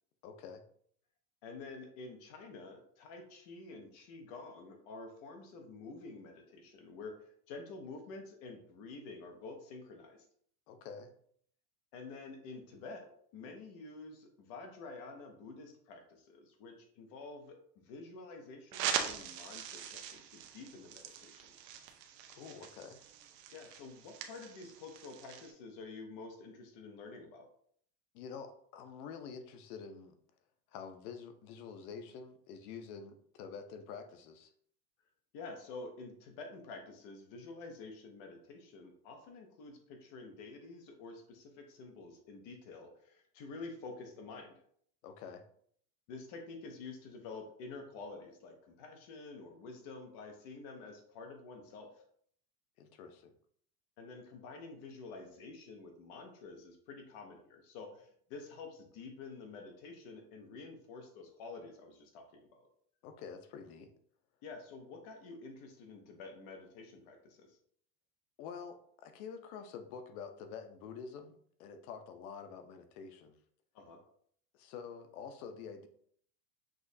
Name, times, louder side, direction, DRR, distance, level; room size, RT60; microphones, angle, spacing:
voice 1, 0.2-0.6 10.7-11.1 22.3-23.0 28.1-30.2 30.7-34.5 45.0-45.4 52.8-53.3 63.0-63.9 68.4-73.4 74.5-75.9, left 6 dB, 65° left, 8 dB, 0.8 m, -47 dB
voice 2, 1.4-10.3 11.9-21.5 23.5-27.5 35.3-44.5 46.1-51.9 54.0-62.7 64.4-67.6 73.7-74.0, left 3 dB, 30° left, 4 dB, 0.4 m, -49 dB
sound 1, 18.7-25.5, right 8 dB, 80° right, 0.8 m, -42 dB
6.2 x 2.9 x 2.6 m, 0.63 s
supercardioid pair, 170°, 49 cm